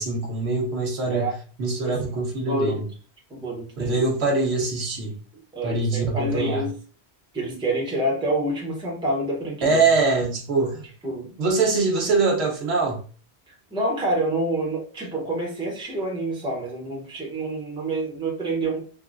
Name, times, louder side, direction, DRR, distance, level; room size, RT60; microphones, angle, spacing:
voice 1, 0.0-2.8 3.8-5.1 5.6-6.7 9.6-10.8 11.4-13.0, right 3 dB, 70° right, 1.1 m, -23 dB
voice 2, 3.3-4.0 5.5-6.7 7.3-9.8 11.0-11.3 13.5-18.8, right 1 dB, 5° right, 0.7 m, -27 dB
3.6 x 2.1 x 2.4 m
omnidirectional pair, 1.1 m